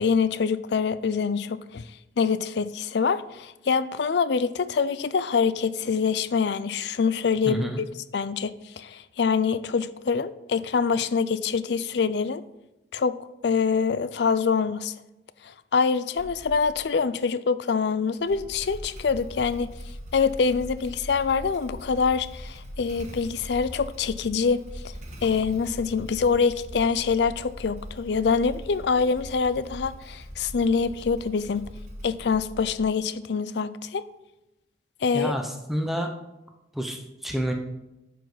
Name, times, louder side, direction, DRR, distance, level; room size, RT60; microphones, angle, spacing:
voice 1, 0.0-1.9 2.2-7.6 8.1-12.4 12.9-13.2 13.4-14.9 15.4-19.7 20.1-24.6 25.2-31.7 32.0-34.0 35.0-35.3, left 5 dB, 65° left, 15 dB, 0.4 m, -25 dB
voice 2, 7.5-7.8 35.1-36.1 36.7-37.5, equal, ahead, 3 dB, 0.7 m, -29 dB
Motorcycle / Engine starting, 16.1-16.8 18.2-33.1, equal, 40° right, 1.4 m, -41 dB
11.5 x 5.0 x 4.0 m, 0.97 s
head